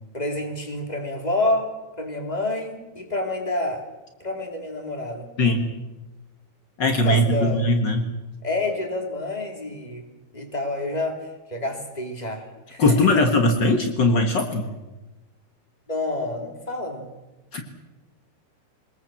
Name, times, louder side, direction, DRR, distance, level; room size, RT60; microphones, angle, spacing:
voice 1, 0.0-1.7 2.0-3.8 4.2-5.3 7.0-7.6 8.4-10.1 10.3-13.2 15.9-17.1, left 2 dB, 10° left, 3 dB, 2.7 m, -28 dB
voice 2, 5.4-5.7 6.8-8.1 12.8-14.7 17.5-17.6, left 1 dB, 65° left, 5 dB, 1.1 m, -20 dB
23.5 x 20.5 x 7.6 m, 1.1 s
omnidirectional pair, 4.5 m